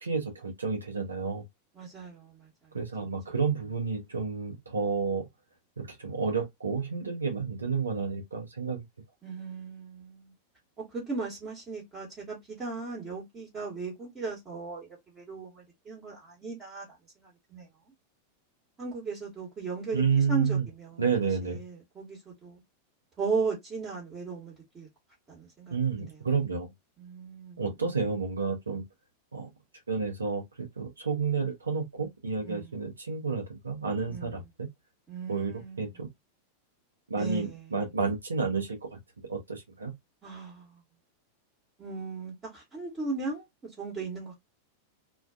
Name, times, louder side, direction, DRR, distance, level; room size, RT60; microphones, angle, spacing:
voice 1, 0.0-1.4 2.7-5.3 5.8-8.8 19.9-20.6 21.0-21.6 25.7-26.7 27.6-28.8 29.3-29.5 29.9-34.7 35.3-36.1 37.1-38.8 39.3-39.9, right 5 dB, 75° right, 0.6 m, -30 dB
voice 2, 1.7-2.5 9.2-10.3 10.8-14.9 15.1-16.9 17.2-17.7 18.8-21.0 21.4-22.6 23.2-24.9 25.3-26.2 27.0-27.6 32.4-32.8 34.1-34.5 35.1-35.9 37.1-37.8 40.2-40.8 41.8-44.3, right 4 dB, 25° right, 1.1 m, -37 dB
2.4 x 2.3 x 2.3 m
figure-of-eight pair, 90°, 0 cm